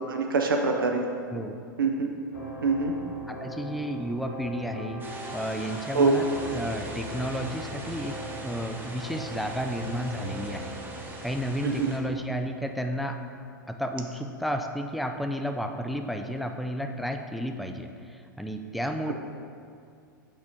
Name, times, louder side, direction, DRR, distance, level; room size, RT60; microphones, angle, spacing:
voice 1, 0.1-1.1 1.8-2.1 2.6-2.9 5.9-6.1 11.6-11.9, right 4 dB, 85° right, 3 dB, 0.5 m, -24 dB
Piano Classical Duo, 2.3-12.1, equal, 80° left, 1.5 m, -40 dB
voice 2, 3.3-5.0 5.3-6.3 6.5-10.7 11.2-13.2 13.7-19.1, equal, ahead, 5 dB, 0.3 m, -32 dB
sound 1, 5.0-12.0, right 2 dB, 20° right, 0.9 m, -42 dB
6.2 x 4.2 x 4.4 m, 2.3 s
hypercardioid pair, 100°, 11 cm